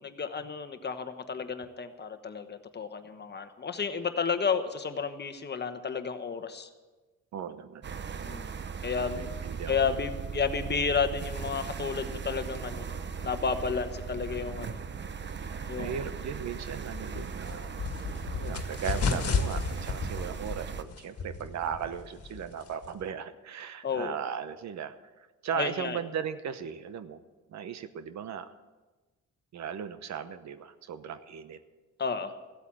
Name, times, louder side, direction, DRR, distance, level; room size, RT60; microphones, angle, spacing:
voice 1, 0.0-6.7 8.3-8.5 8.8-9.3 9.7-12.9 13.2-14.8 15.6-15.9 23.8-24.2 25.5-26.0 32.0-32.3, left 5 dB, 35° left, 9 dB, 1.2 m, -32 dB
voice 2, 7.3-7.8 9.1-10.0 15.8-17.7 18.3-27.2 27.5-28.5 29.5-31.6, right 8 dB, 65° right, 12 dB, 1.0 m, -37 dB
sound 1, 7.8-20.8, right 6 dB, 35° right, 0.9 m, -38 dB
sound 2, 16.9-23.1, left 4 dB, 50° left, 1.7 m, -33 dB
15.0 x 8.3 x 7.6 m, 1.2 s
cardioid pair, 90°, 30 cm